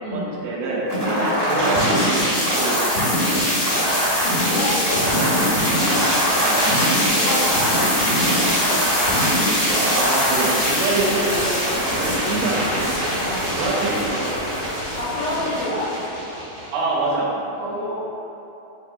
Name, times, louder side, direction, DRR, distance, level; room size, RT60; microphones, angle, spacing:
voice 1, 0.1-2.8 3.2-4.0 6.4-6.6 9.7-12.9 13.5-14.3 16.7-18.0, right 2 dB, 85° right, -4 dB, 2.6 m, -25 dB
sound 1, 0.9-16.9, equal, 65° left, 1.3 m, -21 dB
voice 2, 4.4-5.4 7.0-8.0 8.3-8.7 13.1-13.5 15.0-15.9 17.6-18.0, left 1 dB, 80° left, -6 dB, 2.3 m, -28 dB
sound 2, 10.1-10.4 10.9-11.4, equal, 55° right, 1.2 m, -36 dB
7.1 x 2.9 x 2.3 m, 2.9 s
omnidirectional pair, 4.3 m